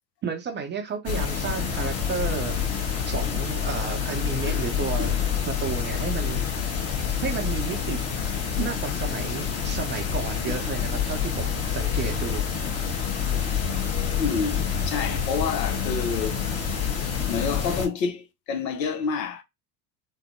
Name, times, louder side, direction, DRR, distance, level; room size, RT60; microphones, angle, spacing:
voice 1, 0.2-5.2 5.5-6.4 7.2-8.0 8.6-12.4, right 6 dB, 25° right, 0.4 m, -32 dB
sound 1, 1.1-17.9, left 7 dB, 30° left, 0.9 m, -27 dB
voice 2, 14.2-16.4 17.3-19.4, left 5 dB, 80° left, 0.7 m, -28 dB
3.6 x 2.0 x 2.5 m
hypercardioid pair, 75°, 50 cm